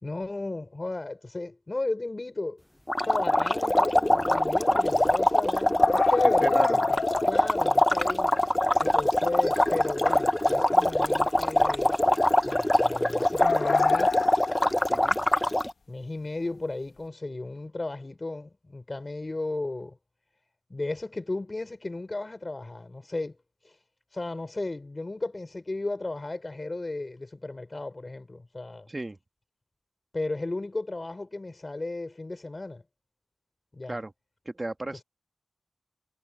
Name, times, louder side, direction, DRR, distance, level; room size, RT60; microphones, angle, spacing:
voice 1, 0.0-2.6 3.0-8.3 8.8-12.0 12.4-14.6 15.9-19.9 20.7-23.3 23.6-23.8 24.1-28.9 30.1-32.8 33.7-34.0, left 2 dB, 35° left, 4.9 m, -34 dB
sound 1, 2.9-15.7, left 1 dB, 15° left, 0.5 m, -23 dB
sound 2, 5.8-7.5 7.8-7.9 10.4-11.1 11.5-11.8 13.4-14.8, left 4 dB, 75° left, 1.1 m, -28 dB
voice 2, 6.2-6.8 14.9-15.2 28.9-29.2 33.9-34.1 34.4-35.0, right 2 dB, 30° right, 1.5 m, -34 dB
wide cardioid pair, 70°, 0 cm